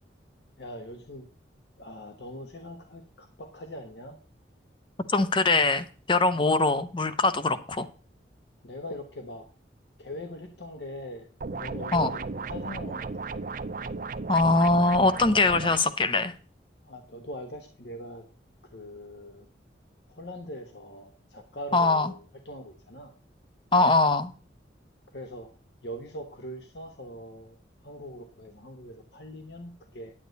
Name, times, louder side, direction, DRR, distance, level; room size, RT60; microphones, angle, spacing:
voice 1, 0.6-1.3 1.8-4.2 6.3-6.4 8.6-9.4 10.0-13.5 16.8-18.2 18.7-19.5 20.1-23.1 25.1-25.5 25.8-27.6 27.8-30.1, equal, 65° left, 1.2 m, -42 dB
voice 2, 5.1-7.9 11.9-12.1 14.3-16.3 21.7-22.1 23.7-24.3, left 3 dB, 25° left, 0.7 m, -22 dB
sound 1, 11.4-15.8, right 4 dB, 45° right, 0.5 m, -35 dB
9.5 x 8.7 x 4.0 m
head